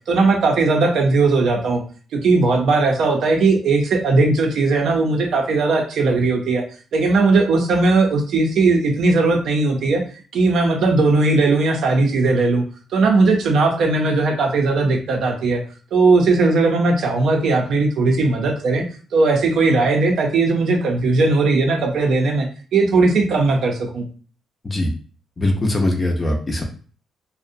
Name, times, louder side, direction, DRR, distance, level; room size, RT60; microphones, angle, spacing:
voice 1, 0.1-1.8 2.1-6.6 6.9-10.0 10.3-12.6 12.9-15.6 15.9-18.8 19.1-24.1, right 3 dB, 65° right, 2 dB, 0.5 m, -18 dB
voice 2, 25.4-26.6, left 1 dB, 20° left, 2 dB, 0.4 m, -21 dB
2.6 x 2.0 x 2.5 m, 0.41 s
cardioid pair, 165°, 0 cm